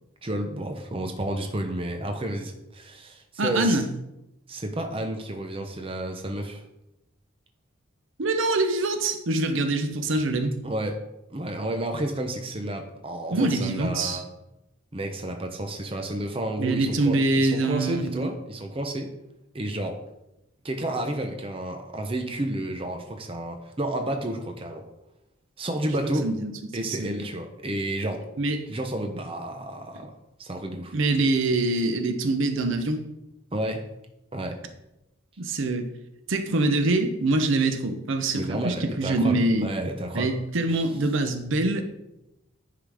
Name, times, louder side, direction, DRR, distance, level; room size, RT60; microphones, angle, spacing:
voice 1, 0.2-3.8 4.5-6.6 10.6-11.0 11.3-14.2 14.9-19.1 19.5-20.0 20.6-24.9 25.6-26.3 26.7-28.2 28.7-30.1 30.4-30.9 33.5-33.8 34.3-34.6 38.3-40.3, right 1 dB, 25° right, 4 dB, 0.7 m, -31 dB
voice 2, 3.4-3.9 8.2-10.5 13.3-14.2 16.6-18.3 26.2-27.2 28.4-28.7 30.9-33.0 35.4-35.9 36.3-39.7 40.1-41.8, right 2 dB, 65° right, 7 dB, 0.7 m, -24 dB
10.0 x 3.8 x 4.9 m, 0.90 s
head